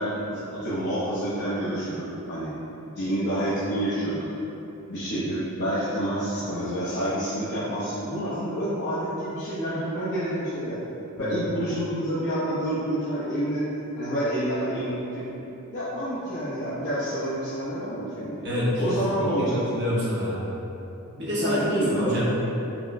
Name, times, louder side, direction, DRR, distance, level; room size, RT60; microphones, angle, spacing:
voice 1, 0.0-2.5 3.0-4.3 4.9-10.8 11.2-13.6 14.0-15.2 15.7-18.4 18.8-19.7 21.4-22.2, right 1 dB, 55° left, -11 dB, 0.7 m, -28 dB
voice 2, 18.4-19.3 19.5-20.4 21.1-22.2, equal, 50° right, -8 dB, 1.0 m, -27 dB
5.7 x 2.1 x 2.5 m, 3.0 s
head